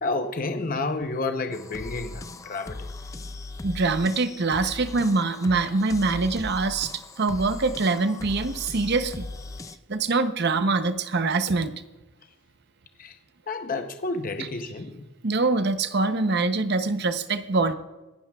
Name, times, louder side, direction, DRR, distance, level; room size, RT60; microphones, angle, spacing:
voice 1, 0.0-2.9 13.0-13.2 13.5-15.0, left 3 dB, 40° left, 6 dB, 0.7 m, -30 dB
sound 1, 1.5-9.8, left 2 dB, 15° left, 0.3 m, -38 dB
voice 2, 3.6-9.3 9.9-11.7 15.2-17.7, right 3 dB, 50° right, 10 dB, 0.7 m, -24 dB
25.0 x 11.5 x 2.3 m, 1.1 s
head